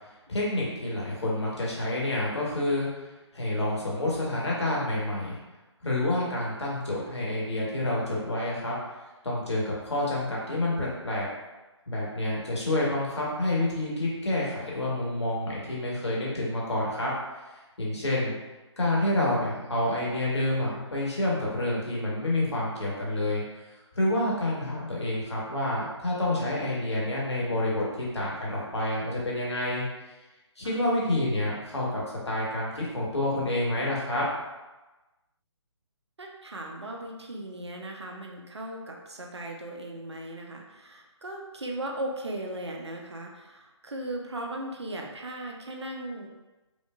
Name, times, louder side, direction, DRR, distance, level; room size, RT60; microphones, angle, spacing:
voice 1, 0.3-2.9 3.3-5.4 5.8-8.7 9.2-11.3 11.9-17.1 17.8-18.4 18.8-23.4 23.9-29.8 30.6-34.2, left 1 dB, 65° left, -5 dB, 1.4 m, -28 dB
voice 2, 36.2-46.3, right 1 dB, 65° right, 0 dB, 0.7 m, -37 dB
5.2 x 2.5 x 2.4 m, 1.1 s
figure-of-eight pair, 140°, 15 cm